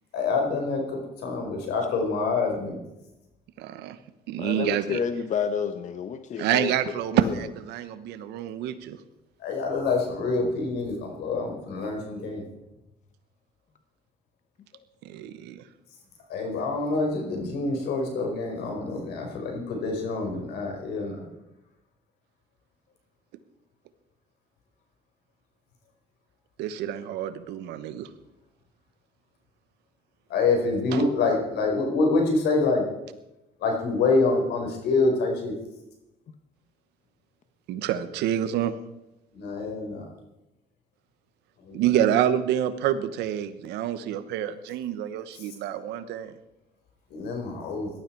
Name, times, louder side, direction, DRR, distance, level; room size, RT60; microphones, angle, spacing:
voice 1, 0.1-2.8 9.4-12.5 16.3-21.2 30.3-32.8 33.6-35.5 39.3-40.0 41.6-41.8 45.3-45.4 47.1-47.9, left 3 dB, 80° left, 2 dB, 4.7 m, -26 dB
voice 2, 3.6-4.0 4.3-5.0 6.4-9.0 15.0-15.6 26.6-28.1 37.7-38.7 41.7-46.3, right 11 dB, 85° right, 12 dB, 1.2 m, -27 dB
voice 3, 4.4-6.7 7.1-7.3 14.7-14.8, left 7 dB, 45° left, 9 dB, 1.0 m, -30 dB
17.5 x 12.5 x 4.6 m, 0.94 s
cardioid pair, 110°, 17 cm